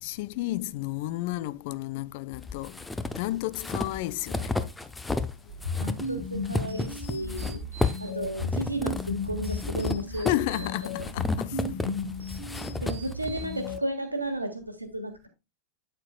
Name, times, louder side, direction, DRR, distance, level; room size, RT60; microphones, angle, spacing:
voice 1, 0.0-4.6 5.4-5.5 5.8-5.9 10.2-11.6 12.4-12.5, left 16 dB, 50° left, 0.4 m, -32 dB
sound 1, 2.3-5.3 5.6-13.8, left 3 dB, 10° left, 0.7 m, -33 dB
sound 2, 5.5-13.8, left 2 dB, 85° left, 4.4 m, -35 dB
voice 2, 5.8-7.7 8.0-10.3 10.5-10.6 12.8-15.3, right 1 dB, 85° right, 1.6 m, -33 dB
9.0 x 8.7 x 2.3 m
figure-of-eight pair, 90°, 0 cm